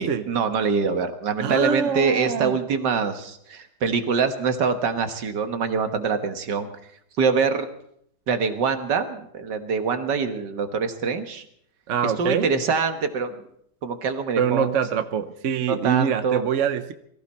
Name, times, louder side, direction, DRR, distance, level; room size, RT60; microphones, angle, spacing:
voice 1, 0.0-6.7 7.2-7.7 8.3-11.4 12.0-13.5 13.8-14.8 15.7-16.4, right 5 dB, 70° right, 8 dB, 1.9 m, -24 dB
voice 2, 1.4-2.6 11.9-12.5 14.4-16.9, right 7 dB, 50° right, 10 dB, 1.0 m, -24 dB
22.5 x 15.0 x 4.3 m, 0.69 s
omnidirectional pair, 2.0 m